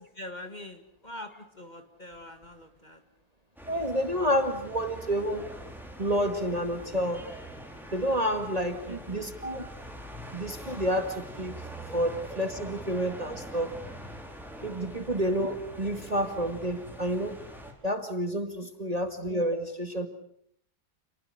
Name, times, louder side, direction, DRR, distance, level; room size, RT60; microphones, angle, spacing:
voice 1, 0.1-3.0 8.9-9.2 15.0-15.1, left 1 dB, 30° left, 7 dB, 2.1 m, -44 dB
sound 1, 3.6-17.7, equal, ahead, 4.7 m, -43 dB
voice 2, 3.7-5.5 6.0-7.3 7.9-9.7 10.3-11.6 11.9-13.7 14.6-17.4 17.8-20.1, equal, 25° right, 7 dB, 2.1 m, -29 dB
29.0 x 21.0 x 8.0 m, 0.68 s
omnidirectional pair, 1.6 m